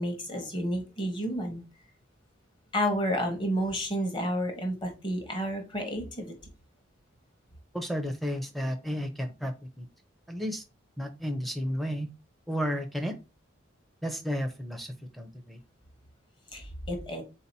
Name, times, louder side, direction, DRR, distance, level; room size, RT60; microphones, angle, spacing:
voice 1, 0.0-1.6 2.7-6.3 16.5-17.2, equal, 25° left, 3 dB, 1.1 m, -30 dB
voice 2, 7.7-9.9 10.3-10.6 11.0-12.1 12.5-13.2 14.0-15.6, equal, ahead, 5 dB, 0.6 m, -32 dB
3.9 x 2.8 x 4.0 m, 0.30 s
head